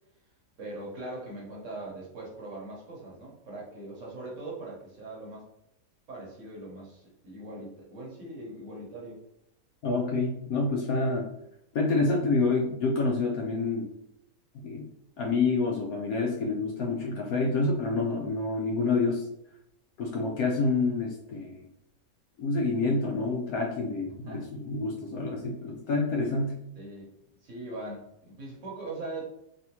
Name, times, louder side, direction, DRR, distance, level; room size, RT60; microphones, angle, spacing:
voice 1, 0.6-5.5 6.1-9.2 24.3-24.5 26.8-27.1 27.4-29.2, right 2 dB, 55° right, -4 dB, 1.1 m, -41 dB
voice 2, 9.8-11.3 11.7-13.9 14.6-14.9 15.2-19.3 20.0-21.7 22.4-26.6, left 3 dB, 70° left, 0 dB, 0.9 m, -28 dB
3.4 x 2.5 x 2.8 m, 0.79 s
omnidirectional pair, 1.8 m